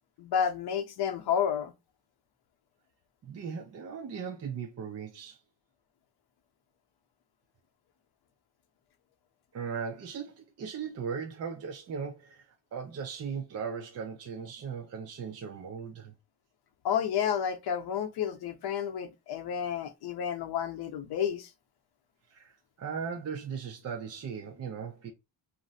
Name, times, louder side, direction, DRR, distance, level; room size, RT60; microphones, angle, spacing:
voice 1, 0.2-1.7 16.8-21.5, left 8 dB, 60° left, 0.7 m, -30 dB
voice 2, 3.2-5.4 9.5-16.1 22.3-25.1, right 6 dB, 40° right, 0.4 m, -38 dB
2.5 x 2.0 x 3.8 m
cardioid pair, 140°, 43 cm